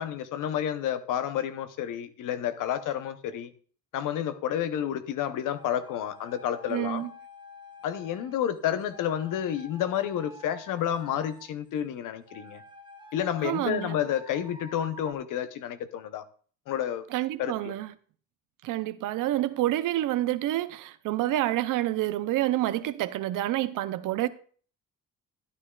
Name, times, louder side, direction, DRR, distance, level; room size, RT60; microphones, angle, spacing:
voice 1, 0.0-3.5 3.9-7.0 7.8-12.6 13.1-16.2 16.7-17.1 17.4-17.7, left 10 dB, 80° left, 0.8 m, -30 dB
sound 1, 5.6-8.5 8.9-11.6 12.3-15.1, left 1 dB, 15° right, 1.1 m, -50 dB
voice 2, 6.7-7.1 13.4-14.0 17.1-17.9 18.6-24.3, right 14 dB, 85° right, 0.6 m, -28 dB
13.0 x 9.6 x 2.3 m
cardioid pair, 85°, 31 cm